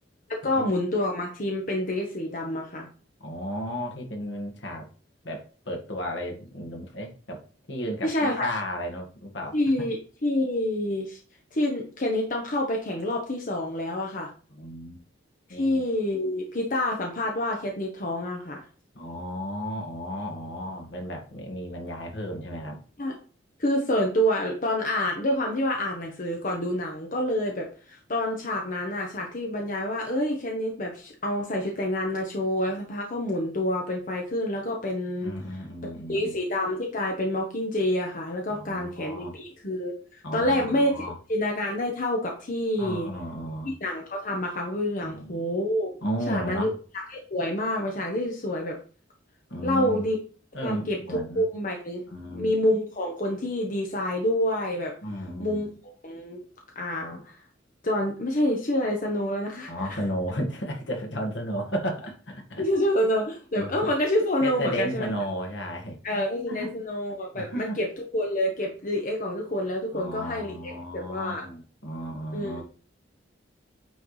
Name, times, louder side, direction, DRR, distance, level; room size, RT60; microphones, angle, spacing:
voice 1, 0.3-2.9 8.0-8.5 9.5-11.2 11.5-14.3 15.5-18.6 23.0-23.1 23.6-35.3 36.1-41.0 41.3-43.1 43.6-45.9 46.3-48.8 49.6-50.2 50.6-51.0 51.3-52.0 52.3-54.9 55.4-55.7 56.0-56.4 56.7-57.4 57.8-59.7 62.6-65.1 66.0-67.9 68.1-71.4 72.3-72.6, left 1 dB, 45° left, 1 dB, 1.1 m, -27 dB
voice 2, 3.2-4.9 5.2-7.4 7.7-9.6 14.5-15.0 15.5-15.8 19.0-22.8 35.2-36.4 38.5-39.3 40.2-41.1 42.8-43.7 45.0-45.4 46.0-46.7 49.5-50.0 50.5-51.4 52.1-52.5 55.0-55.7 59.7-62.6 63.6-63.9 64.4-66.7 67.3-67.8 69.9-72.6, equal, 70° left, 1 dB, 1.9 m, -34 dB
9.2 x 4.5 x 3.3 m, 0.39 s
head